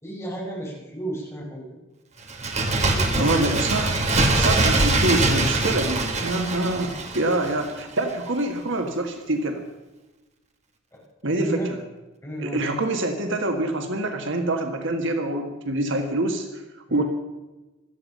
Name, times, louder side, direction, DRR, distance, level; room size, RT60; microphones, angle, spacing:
voice 1, 0.0-1.8 2.6-3.5 10.9-11.0 11.3-11.7 12.2-12.6 16.9-17.0, right 1 dB, 15° left, -3 dB, 5.1 m, -34 dB
Bird, 2.3-7.8 8.1-8.2, right 2 dB, 35° right, 1.9 m, -23 dB
voice 2, 3.2-4.0 4.4-9.6 11.2-11.6 12.4-16.5 16.9-17.0, right 2 dB, 65° right, 5 dB, 1.8 m, -25 dB
17.0 x 13.0 x 5.5 m, 1.1 s
head